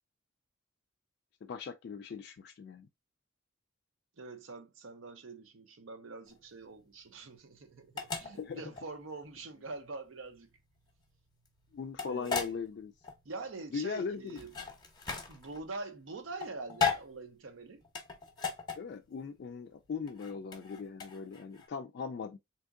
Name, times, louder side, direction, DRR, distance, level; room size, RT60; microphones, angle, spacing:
voice 1, 1.4-2.9 8.4-8.6 11.7-12.9 13.7-14.4 18.8-22.4, left 5 dB, 55° left, 0.3 m, -39 dB
voice 2, 4.2-10.5 12.0-12.6 13.2-14.5 15.3-17.8, right 3 dB, 80° right, 0.7 m, -45 dB
sound 1, 6.3-21.7, left 6 dB, 20° left, 0.8 m, -38 dB
3.6 x 2.8 x 2.4 m
head